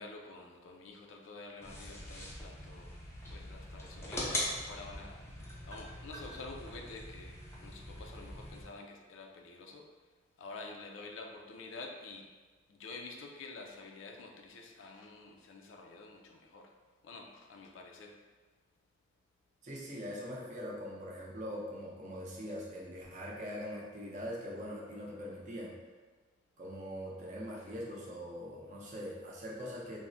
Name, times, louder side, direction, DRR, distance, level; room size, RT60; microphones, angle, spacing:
voice 1, 0.0-2.9 3.3-9.9 10.4-12.3 12.7-16.7 17.0-18.1, left 3 dB, 85° left, 2 dB, 0.4 m, -49 dB
sound 1, 1.6-8.6, left 1 dB, 15° left, 0.4 m, -42 dB
voice 2, 19.6-25.7 26.6-30.0, equal, 40° right, -4 dB, 0.5 m, -42 dB
3.3 x 2.0 x 2.5 m, 1.4 s
head